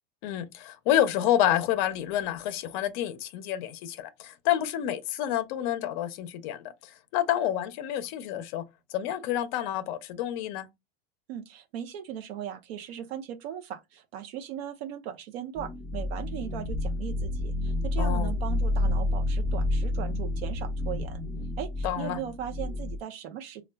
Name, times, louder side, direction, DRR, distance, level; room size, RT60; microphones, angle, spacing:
voice 1, 0.2-8.6 8.9-10.7 18.0-18.3 21.8-22.2, left 11 dB, 45° left, 0.5 m, -28 dB
voice 2, 11.3-21.2 21.6-23.6, right 9 dB, 70° right, 0.6 m, -38 dB
sound 1, 15.5-23.0, left 1 dB, 10° right, 0.5 m, -29 dB
4.2 x 2.3 x 2.2 m
supercardioid pair, 165°, 32 cm